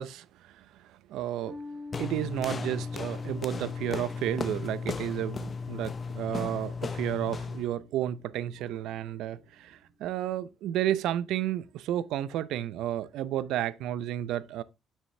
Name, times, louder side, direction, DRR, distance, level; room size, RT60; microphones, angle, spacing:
voice 1, 0.0-1.6 2.0-14.6, right 12 dB, 85° right, 0.5 m, -32 dB
sound 1, 1.5-8.2, left 3 dB, 15° left, 2.2 m, -47 dB
sound 2, 1.9-7.7, left 5 dB, 35° left, 0.6 m, -35 dB
6.5 x 6.3 x 3.3 m
cardioid pair, 100°, 0 cm